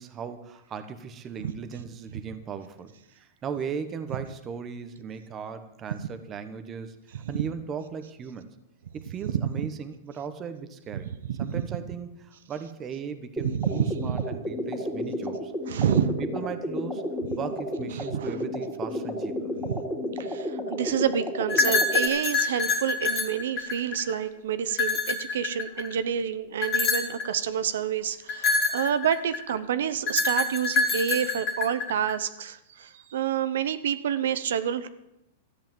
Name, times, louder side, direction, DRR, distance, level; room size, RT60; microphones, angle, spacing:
voice 1, 0.0-8.5 8.9-11.1 11.4-15.5 16.2-17.0 17.4-19.5, right 6 dB, 20° right, 9 dB, 1.1 m, -37 dB
voice 2, 10.9-11.5 13.6-13.8 14.0-14.2 15.7-16.1 17.9-18.4 19.6-19.8 20.2-34.9, right 8 dB, 75° right, 12 dB, 0.9 m, -28 dB
sound 1, 13.4-22.1, left 1 dB, ahead, 3.1 m, -32 dB
sound 2, 21.5-24.2 24.7-25.9 26.6-27.3 28.3-29.5 30.1-32.1, left 4 dB, 25° left, 2.2 m, -26 dB
13.5 x 8.3 x 9.2 m, 0.87 s
supercardioid pair, 160°, 0 cm